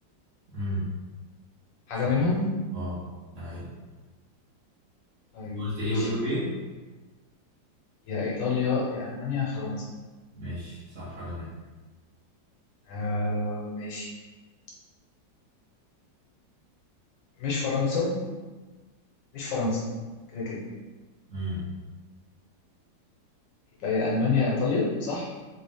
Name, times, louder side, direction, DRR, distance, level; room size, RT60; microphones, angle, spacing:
voice 1, 0.5-0.9 2.7-3.0 3.3-3.7 5.4-6.5 10.3-11.5 21.3-21.6, equal, 45° right, -11 dB, 1.3 m, -32 dB
voice 2, 1.9-2.5 5.3-6.1 8.1-9.9 12.9-14.1 17.4-18.1 19.3-19.8 20.3-20.6 23.8-25.3, left 3 dB, 80° left, -4 dB, 1.6 m, -28 dB
4.0 x 2.4 x 3.5 m, 1.3 s
omnidirectional pair, 2.0 m